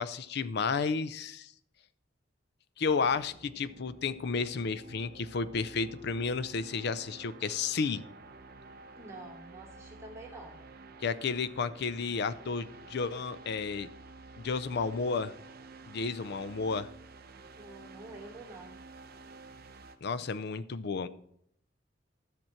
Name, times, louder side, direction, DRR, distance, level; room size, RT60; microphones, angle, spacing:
voice 1, 0.0-1.5 2.8-8.0 11.0-13.9 14.4-15.3 15.9-16.9 20.0-21.1, left 5 dB, 60° left, 15 dB, 0.5 m, -32 dB
sound 1, 2.9-20.0, right 3 dB, 55° right, 0.8 m, -51 dB
voice 2, 9.0-10.6 17.6-18.8, right 2 dB, 15° right, -4 dB, 2.8 m, -48 dB
13.5 x 6.0 x 4.4 m, 0.71 s
head